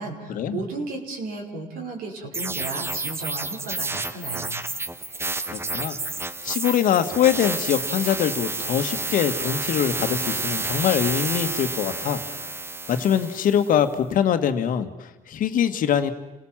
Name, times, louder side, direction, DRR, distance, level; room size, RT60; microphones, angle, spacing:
voice 1, 0.0-4.6, right 3 dB, 75° right, 1 dB, 5.2 m, -34 dB
sound 1, 2.3-13.7, right 2 dB, 15° right, 1.1 m, -30 dB
voice 2, 5.5-6.0 6.4-12.2 12.9-16.1, left 9 dB, 65° left, 8 dB, 1.9 m, -23 dB
29.5 x 18.5 x 7.5 m, 1.1 s
cardioid pair, 105°, 15 cm